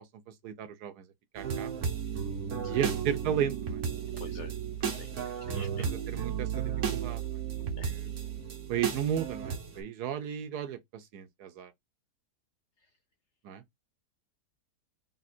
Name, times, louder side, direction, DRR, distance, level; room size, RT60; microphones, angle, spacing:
voice 1, 0.4-1.1 1.3-1.7 2.7-3.8 5.5-6.5 6.9-7.4 7.8-8.1 8.7-11.7 13.4-13.6, right 9 dB, 75° right, 1.2 m, -34 dB
sound 1, 1.4-9.8, right 7 dB, 55° right, 1.1 m, -34 dB
voice 2, 4.2-4.5 4.8-5.9 7.8-7.9, left 5 dB, 60° left, 0.8 m, -47 dB
3.6 x 2.5 x 4.2 m
omnidirectional pair, 1.7 m